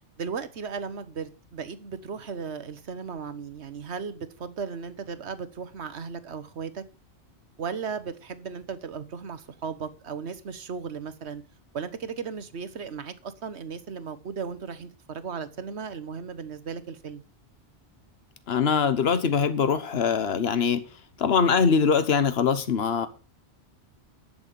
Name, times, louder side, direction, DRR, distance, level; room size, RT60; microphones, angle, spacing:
voice 1, 0.2-6.8 7.6-11.4 11.7-17.2, right 6 dB, 70° right, 1.4 m, -36 dB
voice 2, 18.5-20.8 21.2-23.1, left 6 dB, 60° left, 1.3 m, -22 dB
11.0 x 7.0 x 6.9 m
omnidirectional pair, 1.2 m